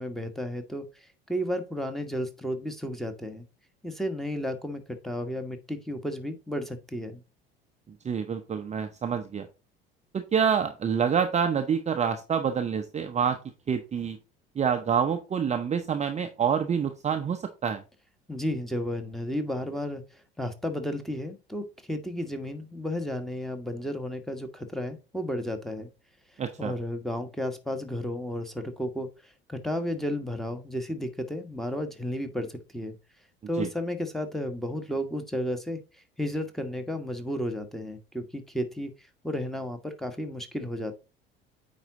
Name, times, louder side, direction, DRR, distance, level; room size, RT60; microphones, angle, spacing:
voice 1, 0.0-3.4 3.8-7.2 18.3-25.9 26.6-33.0 33.5-35.8 36.2-40.9, equal, ahead, 7 dB, 1.4 m, -33 dB
voice 2, 8.0-9.5 10.1-13.4 13.7-14.2 14.6-17.8 26.4-26.7 33.6-33.7, right 7 dB, 25° right, 7 dB, 0.7 m, -27 dB
9.0 x 4.1 x 3.9 m, 0.30 s
figure-of-eight pair, 65°, 30 cm